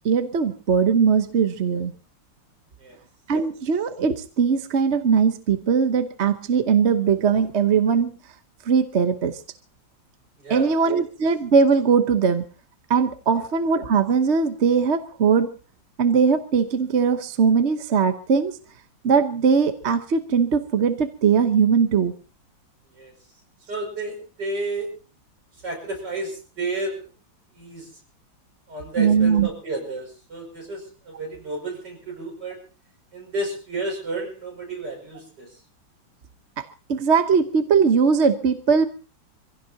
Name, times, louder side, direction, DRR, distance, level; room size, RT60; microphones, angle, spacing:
voice 1, 0.0-1.9 3.3-8.1 8.7-9.4 10.5-12.4 12.9-15.5 16.0-18.5 19.0-22.1 29.0-29.5 36.6-38.9, right 6 dB, 45° right, 9 dB, 1.1 m, -20 dB
voice 2, 10.4-11.0 22.9-23.1 23.7-24.9 25.6-27.1 27.5-27.9 28.7-32.6 33.1-35.5, right 2 dB, 60° right, 1 dB, 6.6 m, -32 dB
26.0 x 16.5 x 2.8 m, 0.34 s
omnidirectional pair, 2.1 m